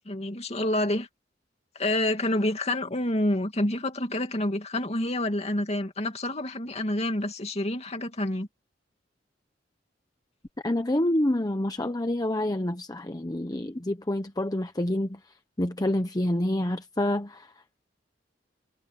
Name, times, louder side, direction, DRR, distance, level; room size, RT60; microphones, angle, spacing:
voice 1, 0.1-1.1 1.7-8.5, left 1 dB, 35° left, 2.6 m, -28 dB
voice 2, 10.6-15.2 15.6-17.5, left 1 dB, 20° left, 0.9 m, -27 dB
head